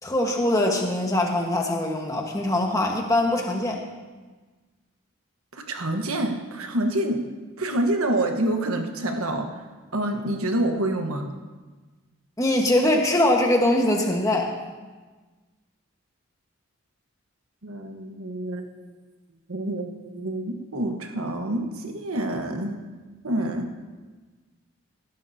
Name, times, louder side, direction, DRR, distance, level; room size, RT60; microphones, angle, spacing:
voice 1, 0.0-3.8 12.4-14.5, left 1 dB, 15° left, 1 dB, 1.4 m, -22 dB
voice 2, 5.5-7.3 7.6-9.6 9.9-11.3 17.6-18.6 19.5-22.8 23.2-23.7, right 1 dB, 90° right, 4 dB, 1.4 m, -27 dB
18.5 x 12.0 x 2.8 m, 1.3 s
head